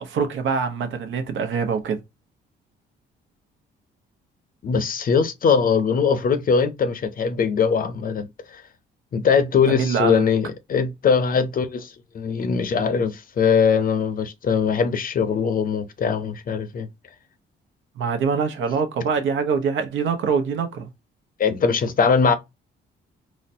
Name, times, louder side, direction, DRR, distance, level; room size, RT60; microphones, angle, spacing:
voice 1, 0.0-2.0 9.7-10.2 18.0-20.9, right 6 dB, 75° right, 0.9 m, -24 dB
voice 2, 4.6-8.6 9.1-16.9 21.4-22.4, left 6 dB, 45° left, 0.6 m, -21 dB
4.0 x 2.1 x 2.6 m
cardioid pair, 90°, 20 cm